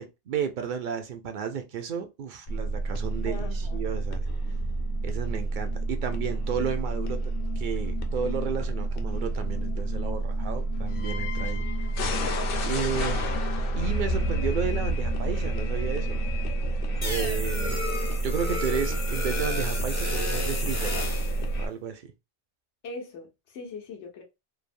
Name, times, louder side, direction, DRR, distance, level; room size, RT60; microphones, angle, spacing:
voice 1, 0.0-4.2 5.0-7.2 7.6-11.9 12.6-13.4 13.8-16.2 17.0-17.9 18.2-21.1 21.6-22.1, right 7 dB, 60° right, 0.5 m, -33 dB
sound 1, 2.5-21.7, right 1 dB, 60° left, 0.7 m, -29 dB
voice 2, 3.3-3.8 22.8-24.2, left 4 dB, 90° left, 1.0 m, -40 dB
sound 2, 17.0-21.4, left 2 dB, 20° left, 0.4 m, -34 dB
3.2 x 2.0 x 2.5 m
omnidirectional pair, 1.2 m